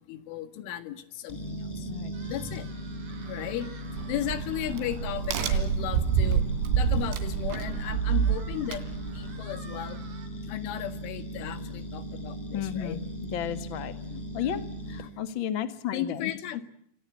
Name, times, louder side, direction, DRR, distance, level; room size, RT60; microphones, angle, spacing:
voice 1, 0.1-1.9 2.3-2.7 3.2-3.7 4.1-6.4 6.8-8.9 9.1-10.0 10.5-13.0 14.1-14.6 15.9-16.6, left 12 dB, 90° left, 10 dB, 4.3 m, -35 dB
sound 1, 1.3-15.0, equal, 10° left, 7.1 m, -38 dB
sound 2, 2.1-5.5 6.0-6.1 6.4-6.5 7.5-10.3, right 6 dB, 70° right, 5.5 m, -51 dB
Crack, 4.0-9.4, right 7 dB, 90° right, 5.1 m, -28 dB
voice 2, 12.5-13.0 13.3-13.9 14.3-14.6 14.9-16.3, left 9 dB, 60° left, 10 dB, 1.2 m, -32 dB
28.0 x 25.0 x 8.4 m, 0.70 s
omnidirectional pair, 5.4 m